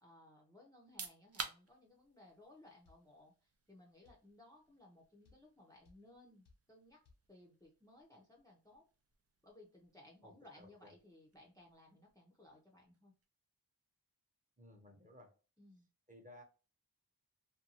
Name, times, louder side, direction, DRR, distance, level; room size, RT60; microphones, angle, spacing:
voice 1, 0.0-7.0 7.3-8.8 9.4-13.1 15.6-15.9, left 1 dB, 10° left, -1 dB, 0.6 m, -61 dB
sound 1, 0.7-13.4, right 5 dB, 40° right, 0.5 m, -55 dB
sound 2, 2.9-3.1 4.1-4.3 5.3-5.5 5.9-6.1 6.5-6.7 7.1-7.3, left 3 dB, 75° left, 0.7 m, -66 dB
voice 2, 10.2-10.9 14.6-15.3 16.1-16.4, left 1 dB, 20° right, 1 dB, 0.9 m, -58 dB
2.6 x 2.2 x 2.8 m, 0.33 s
wide cardioid pair, 55°, 40 cm